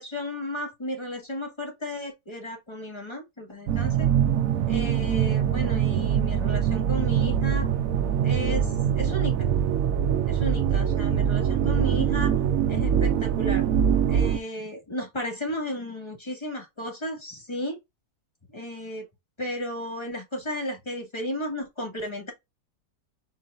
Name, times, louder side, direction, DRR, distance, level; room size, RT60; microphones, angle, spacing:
voice 1, 0.0-4.1 4.7-7.7 8.2-8.7 9.0-9.5 10.3-12.4 12.7-13.7 14.1-17.8 18.5-19.1 19.4-22.3, left 1 dB, 15° left, 1.9 m, -34 dB
sound 1, 3.7-14.4, right 9 dB, 65° right, 0.9 m, -23 dB
4.6 x 4.2 x 2.4 m
omnidirectional pair, 1.8 m